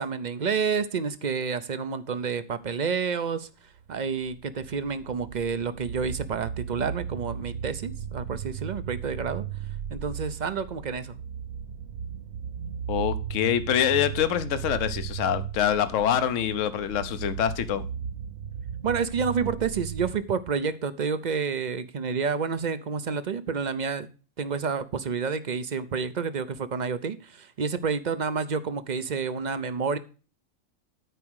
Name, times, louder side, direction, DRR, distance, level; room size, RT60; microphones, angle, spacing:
voice 1, 0.0-3.5 3.9-9.5 9.9-11.1 18.8-24.1 24.4-30.0, right 5 dB, 45° right, 0.6 m, -29 dB
sound 1, 3.8-20.1, right 8 dB, 85° right, 1.2 m, -36 dB
voice 2, 12.9-17.8, left 9 dB, 70° left, 1.1 m, -25 dB
12.5 x 4.9 x 6.2 m
omnidirectional pair, 1.4 m